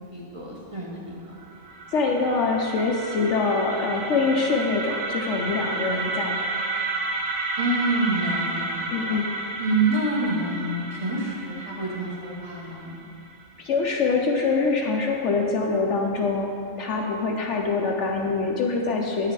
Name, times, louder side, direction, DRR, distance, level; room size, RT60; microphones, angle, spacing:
voice 1, 0.1-1.0 7.6-9.2 9.6-13.0, right 2 dB, 25° right, -4 dB, 0.9 m, -27 dB
sound 1, 1.4-13.4, right 3 dB, 55° right, 0.9 m, -31 dB
voice 2, 1.9-6.5 8.9-9.3 13.6-16.5 16.8-19.3, left 4 dB, 65° left, 0 dB, 0.8 m, -24 dB
9.4 x 4.9 x 4.6 m, 2.5 s
omnidirectional pair, 1.5 m